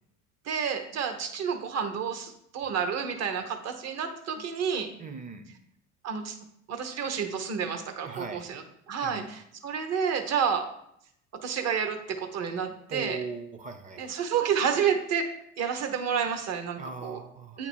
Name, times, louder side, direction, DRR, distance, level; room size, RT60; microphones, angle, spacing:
voice 1, 0.5-4.9 6.0-6.3 6.7-10.7 11.4-13.2 14.0-15.3 15.6-17.2 17.6-17.7, right 7 dB, 50° right, 6 dB, 1.0 m, -30 dB
voice 2, 5.0-5.5 8.0-8.5 9.0-9.3 12.9-14.2 16.8-17.7, right 4 dB, 25° right, 8 dB, 0.7 m, -39 dB
8.3 x 2.9 x 4.5 m, 0.72 s
supercardioid pair, 90°, 34 cm